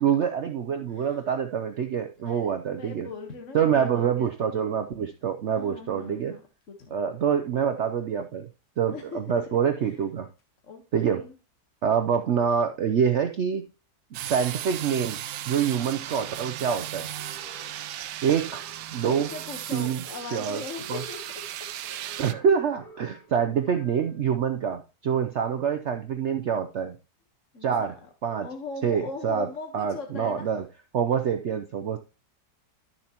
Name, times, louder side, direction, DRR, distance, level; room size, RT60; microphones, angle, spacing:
voice 1, 0.0-3.1 3.5-6.4 6.9-8.5 8.8-10.3 10.9-11.2 11.8-13.7 14.3-15.2 15.5-17.1 18.2-18.6 18.9-19.3 19.7-20.0 20.3-20.6 20.9-21.0 22.2-26.9 27.6-28.0 28.2-28.5 28.8-29.5 29.7-30.6 30.9-32.0, right 7 dB, 60° right, 7 dB, 0.7 m, -26 dB
voice 2, 0.9-1.2 2.2-4.8 5.5-6.4 6.7-7.0 8.9-9.5 9.9-10.0 10.6-11.4 19.1-21.4 27.5-28.1 28.4-30.5, left 4 dB, 50° left, 4 dB, 1.5 m, -40 dB
sound 1, 14.1-22.3, right 12 dB, 80° right, 1.2 m, -36 dB
sound 2, 17.1-24.2, right 1 dB, 75° left, 4.3 m, -50 dB
11.5 x 6.9 x 2.9 m, 0.31 s
omnidirectional pair, 1.8 m